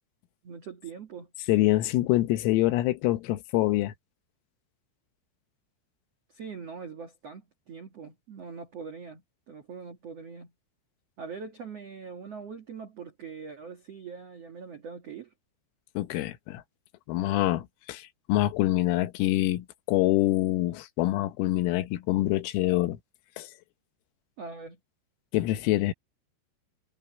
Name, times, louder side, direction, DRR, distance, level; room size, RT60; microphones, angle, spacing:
voice 1, 0.4-1.3 6.3-9.2 9.5-10.5 11.2-15.3 24.4-24.8, right 5 dB, 70° right, 1.5 m, -42 dB
voice 2, 1.5-3.9 16.0-16.6 17.1-23.0 23.4-23.5 25.3-25.9, left 16 dB, 85° left, 3.9 m, -25 dB
omnidirectional pair, 5.9 m